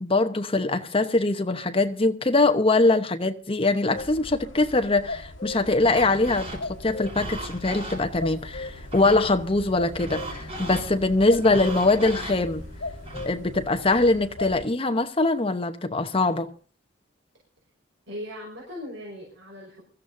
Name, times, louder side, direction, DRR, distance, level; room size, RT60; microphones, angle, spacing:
voice 1, 0.0-12.6 13.2-16.5, left 2 dB, 30° left, 0.9 m, -23 dB
sound 1, 3.9-14.7, left 2 dB, 75° left, 1.5 m, -39 dB
sound 2, 5.8-13.3, right 1 dB, 30° right, 4.1 m, -38 dB
sound 3, 6.9-15.2, left 3 dB, 50° right, 6.3 m, -49 dB
voice 2, 18.1-19.8, left 1 dB, 70° right, 5.5 m, -38 dB
24.0 x 14.0 x 2.7 m
head